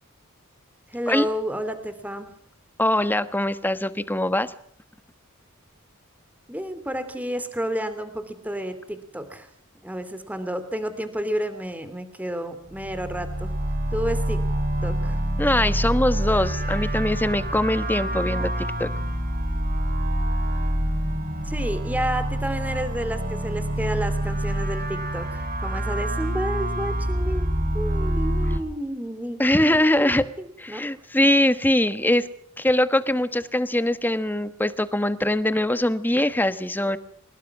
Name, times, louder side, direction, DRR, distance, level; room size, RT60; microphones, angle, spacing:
voice 1, 0.9-2.3 6.5-9.5 9.8-13.5 13.9-14.4 14.8-15.2 16.8-16.9 21.4-30.8, equal, 5° right, 10 dB, 2.8 m, -31 dB
voice 2, 2.8-4.5 15.4-18.9 29.4-30.3 30.6-32.3 32.6-37.0, left 1 dB, 10° left, 12 dB, 1.2 m, -22 dB
sound 1, 12.7-28.6, right 1 dB, 40° right, 3.5 m, -26 dB
29.5 x 18.5 x 6.1 m, 0.63 s
head